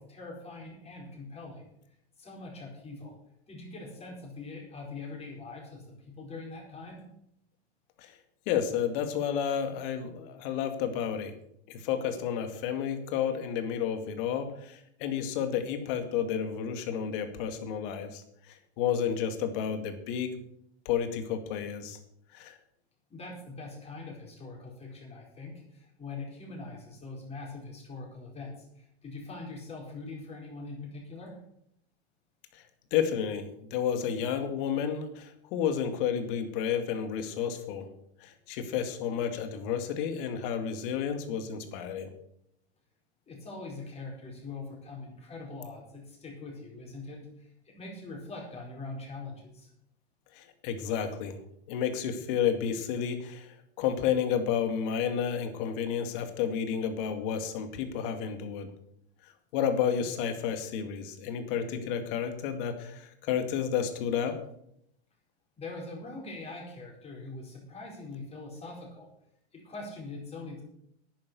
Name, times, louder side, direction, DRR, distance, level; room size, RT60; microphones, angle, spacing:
voice 1, 0.0-1.7 2.2-3.2 3.5-7.1 23.1-31.4 43.3-49.7 65.6-69.1 69.5-70.6, left 3 dB, 20° left, -1 dB, 4.8 m, -43 dB
voice 2, 8.5-11.4 11.7-20.3 20.9-22.0 22.3-22.6 32.5-32.6 32.9-37.9 38.2-42.1 50.3-51.4 51.7-58.7 59.5-64.4, left 8 dB, 50° left, 7 dB, 2.3 m, -31 dB
10.5 x 9.6 x 7.0 m, 0.73 s
hypercardioid pair, 135°, 33 cm